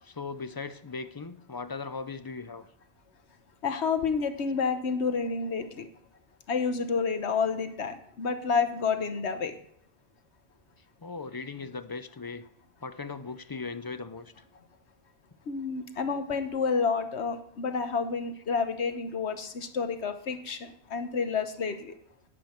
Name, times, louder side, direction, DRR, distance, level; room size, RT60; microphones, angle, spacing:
voice 1, 0.0-2.7 11.0-12.4 12.8-14.3, left 4 dB, 30° left, 12 dB, 0.4 m, -38 dB
voice 2, 3.6-5.9 6.5-9.5 15.5-21.9, left 5 dB, 80° left, 9 dB, 1.3 m, -29 dB
11.0 x 9.9 x 4.4 m, 0.71 s
omnidirectional pair, 1.1 m